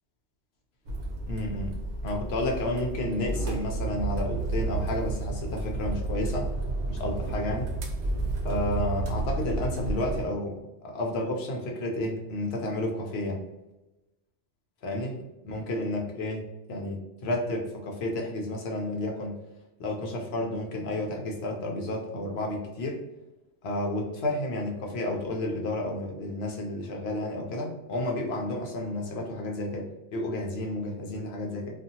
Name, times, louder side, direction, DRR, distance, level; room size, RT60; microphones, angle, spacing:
sound 1, 0.8-10.2, right 2 dB, 70° right, 0.9 m, -31 dB
voice 1, 1.3-1.7 2.0-6.5 6.9-7.7 8.4-10.6 10.8-13.4 14.8-15.1 15.5-19.4 19.8-23.0 23.6-31.8, left 1 dB, 65° left, 1 dB, 0.8 m, -31 dB
2.6 x 2.4 x 2.7 m, 1.0 s
omnidirectional pair, 1.2 m